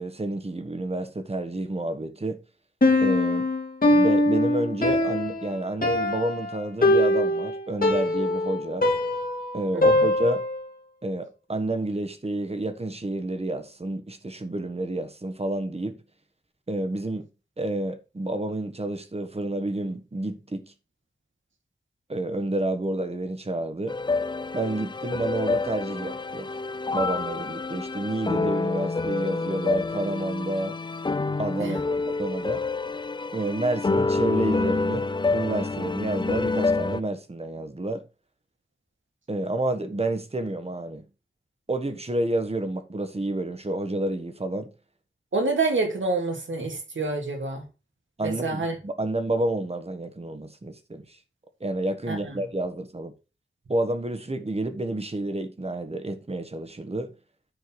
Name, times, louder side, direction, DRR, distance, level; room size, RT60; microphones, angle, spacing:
voice 1, 0.0-2.4 3.0-3.5 3.9-8.8 9.5-10.4 11.0-16.0 16.7-17.3 17.6-20.6 22.1-23.9 24.5-26.5 26.9-30.8 31.4-32.6 33.3-35.0 35.3-38.0 39.3-41.0 41.7-44.7 48.2-51.2 51.6-53.1 53.7-57.1, right 1 dB, 30° right, 1.4 m, -29 dB
Piano, 2.8-10.7, left 1 dB, 45° left, 2.1 m, -22 dB
voice 2, 9.7-10.1 31.6-31.8 45.3-47.6 48.2-48.8 52.1-52.4, right 3 dB, 70° right, 2.6 m, -27 dB
sound 1, 23.9-37.0, left 3 dB, 25° left, 0.4 m, -27 dB
10.0 x 4.5 x 4.6 m
wide cardioid pair, 95°, 20 cm